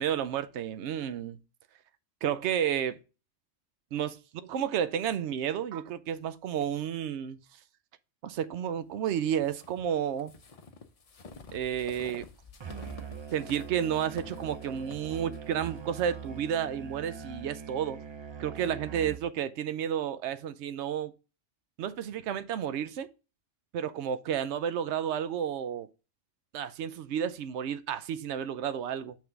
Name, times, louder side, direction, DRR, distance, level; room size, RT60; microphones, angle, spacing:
voice 1, 0.0-1.4 2.2-3.0 3.9-4.2 4.4-7.4 8.2-10.3 11.5-12.2 13.3-18.0 18.4-21.1 21.8-23.1 23.7-25.9 26.5-29.2, right 9 dB, 70° right, 0.9 m, -31 dB
sound 1, 9.4-17.3, left 4 dB, 40° left, 0.6 m, -50 dB
Musical instrument, 12.6-19.4, right 6 dB, 45° right, 0.3 m, -43 dB
5.9 x 3.6 x 5.7 m
omnidirectional pair, 1.3 m